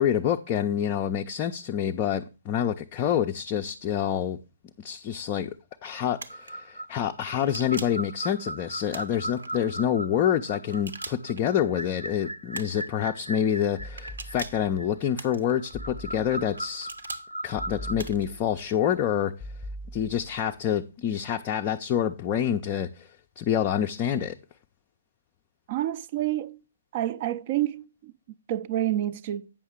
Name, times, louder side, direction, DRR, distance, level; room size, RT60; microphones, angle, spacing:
voice 1, 0.0-4.4 4.8-5.5 5.8-16.9 17.4-19.3 19.9-23.1 23.4-24.4, left 9 dB, 25° left, 0.4 m, -27 dB
sound 1, 6.2-6.5 7.4-8.1 8.9-9.5 10.7-11.4 12.5-12.9 14.0-14.7 15.2-15.7 16.6-17.3 18.0-18.4, right 3 dB, 65° right, 0.9 m, -41 dB
sound 2, 6.3-17.9, right 1 dB, 85° right, 0.5 m, -39 dB
sound 3, 13.8-14.8 15.7-16.6 17.6-18.6 19.4-20.5, equal, ahead, 0.8 m, -41 dB
voice 2, 25.7-26.6 26.9-29.5, right 13 dB, 35° right, 0.4 m, -29 dB
8.7 x 6.2 x 3.6 m
figure-of-eight pair, 130°, 0 cm